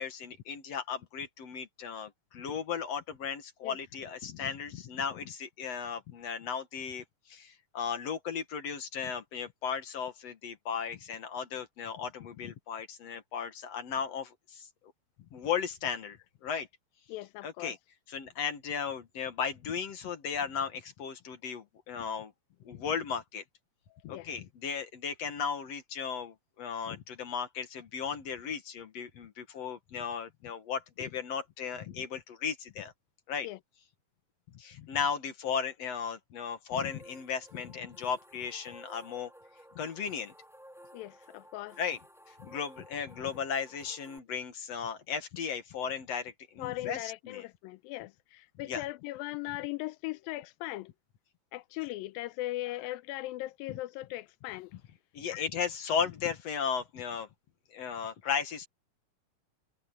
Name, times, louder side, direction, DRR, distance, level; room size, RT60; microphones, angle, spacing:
voice 1, 0.0-14.7 15.3-16.7 17.4-17.8 18.1-22.3 22.7-23.4 24.0-32.9 33.3-33.5 34.5-39.3 39.8-40.3 41.8-42.0 42.3-47.4 48.7-48.8 55.1-57.3 57.7-58.7, left 7 dB, 55° left, 2.2 m, -36 dB
voice 2, 17.1-17.8 24.0-24.3 33.4-33.6 40.9-41.8 46.6-50.9 51.5-54.7 55.3-55.4, left 17 dB, 85° left, 2.4 m, -39 dB
sound 1, 36.8-44.2, equal, ahead, 2.6 m, -55 dB
omnidirectional pair, 4.1 m